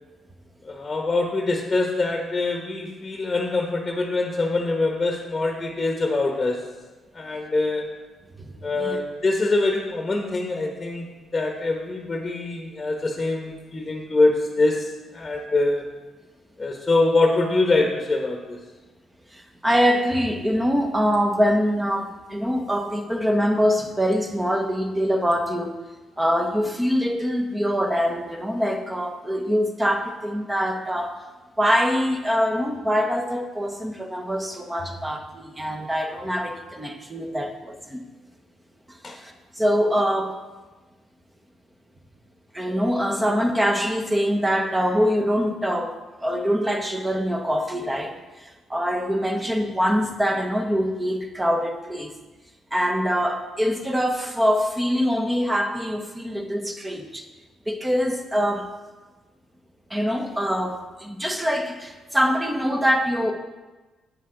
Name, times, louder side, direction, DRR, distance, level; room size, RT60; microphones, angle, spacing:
voice 1, 0.6-6.7 7.1-7.9 8.6-15.8 16.6-18.6 39.0-39.2, left 2 dB, 25° left, 2 dB, 1.2 m, -24 dB
voice 2, 8.4-9.0 19.3-25.8 26.2-31.2 31.6-38.0 38.9-40.4 42.5-52.1 52.7-57.3 57.7-58.7 59.9-63.3, equal, 15° right, 5 dB, 1.1 m, -24 dB
9.1 x 8.5 x 3.9 m, 1.2 s
cardioid pair, 90°, 0 cm